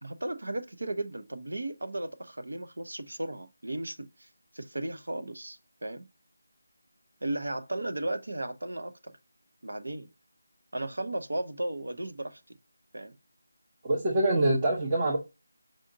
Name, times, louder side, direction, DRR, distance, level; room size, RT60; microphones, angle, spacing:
voice 1, 0.0-4.3 4.5-6.1 7.2-9.1 9.6-10.1 10.7-12.6 12.9-13.1, right 1 dB, 80° right, 0.7 m, -35 dB
voice 2, 13.8-15.2, right 1 dB, 20° right, 0.7 m, -25 dB
4.9 x 2.7 x 2.5 m
figure-of-eight pair, 170°, 0 cm